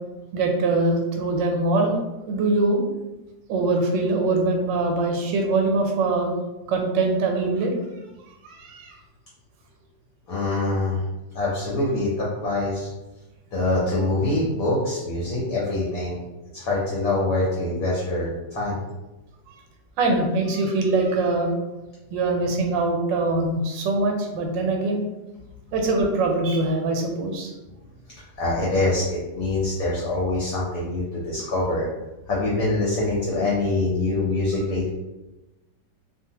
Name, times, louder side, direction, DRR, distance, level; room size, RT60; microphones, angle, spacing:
voice 1, 0.3-2.0 2.3-2.8 3.5-6.3 6.7-7.7 8.4-9.0 20.0-21.5 22.1-25.0 25.7-27.5, right 2 dB, 85° right, 2 dB, 1.3 m, -23 dB
voice 2, 10.3-11.0 11.3-12.9 13.5-16.2 16.5-18.8 28.2-31.9 32.3-34.9, left 2 dB, 65° left, -5 dB, 1.0 m, -24 dB
2.7 x 2.3 x 2.8 m, 1.1 s
omnidirectional pair, 2.0 m